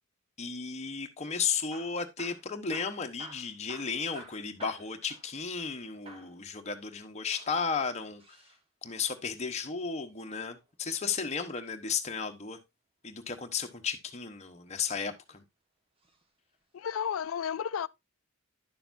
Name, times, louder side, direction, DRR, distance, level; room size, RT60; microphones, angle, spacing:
voice 1, 0.4-8.4 8.8-12.6 13.0-15.4, left 5 dB, 35° left, 1.1 m, -34 dB
Hammer / Drill, 1.6-5.8 6.1-6.4 7.2-8.6 10.4-11.6 13.3-13.8 14.5-15.3 16.0-16.2 16.5-16.6 17.3-17.4, right 2 dB, 30° right, 1.5 m, -52 dB
voice 2, 16.7-17.9, left 8 dB, 85° left, 0.4 m, -32 dB
10.5 x 6.8 x 2.6 m
head